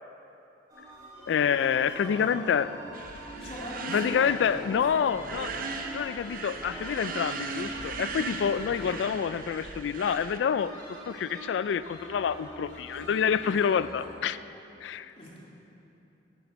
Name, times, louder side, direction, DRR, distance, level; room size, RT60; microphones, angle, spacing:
sound 1, 0.7-14.0, equal, 20° right, 3.0 m, -44 dB
voice 1, 1.3-2.7 3.9-5.5 5.9-10.7 11.1-14.4 14.8-15.1, left 7 dB, 85° left, 16 dB, 0.3 m, -27 dB
voice 2, 2.0-2.5 3.3-5.3 8.5-8.7 15.2-15.4, equal, 35° left, -5 dB, 2.2 m, -42 dB
sound 2, 2.9-10.4, right 4 dB, 50° right, 0.7 m, -38 dB
10.5 x 9.9 x 5.2 m, 3.0 s
head